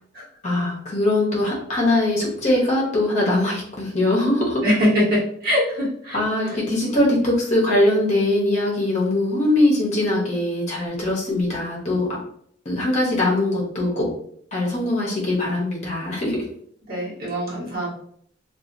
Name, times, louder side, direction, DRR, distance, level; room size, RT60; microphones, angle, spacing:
voice 1, 0.4-4.6 6.1-12.1 12.6-14.1 14.5-16.4, left 1 dB, 40° left, -3 dB, 0.8 m, -21 dB
voice 2, 4.6-6.2 6.4-6.5 16.9-17.9, equal, 50° right, -6 dB, 1.2 m, -22 dB
2.7 x 2.3 x 2.5 m, 0.64 s
head